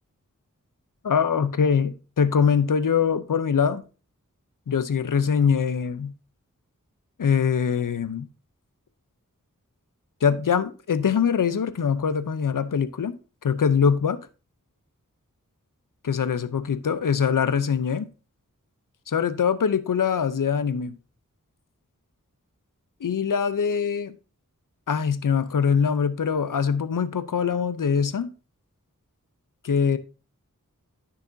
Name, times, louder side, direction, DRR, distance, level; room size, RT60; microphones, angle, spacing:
voice 1, 1.0-3.8 4.7-6.1 7.2-8.3 10.2-13.2 13.4-14.2 16.0-18.1 19.1-21.0 23.0-24.1 24.9-28.3 29.6-30.0, left 6 dB, 70° left, 0.6 m, -23 dB
9.7 x 6.7 x 2.6 m
wide cardioid pair, 50°, 33 cm